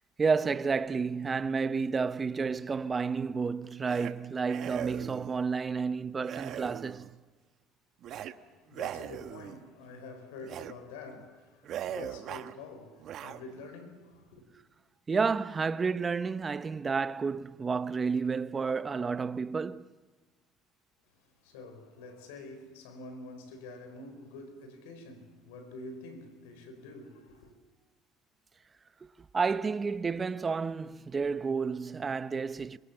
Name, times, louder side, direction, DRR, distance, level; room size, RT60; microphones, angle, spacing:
voice 1, 0.2-7.1 15.1-19.9 29.3-32.8, right 5 dB, 30° right, 0.9 m, -30 dB
sound 1, 3.8-4.1 4.5-5.4 6.2-7.2 8.0-8.3 8.7-9.6 10.4-10.7 11.1-11.3 11.6-12.5 13.0-13.7, right 11 dB, 60° right, 1.1 m, -40 dB
voice 2, 8.0-14.4 21.2-27.5, left 2 dB, 85° left, 4.4 m, -47 dB
26.5 x 22.5 x 7.3 m
hypercardioid pair, 70°, 0 cm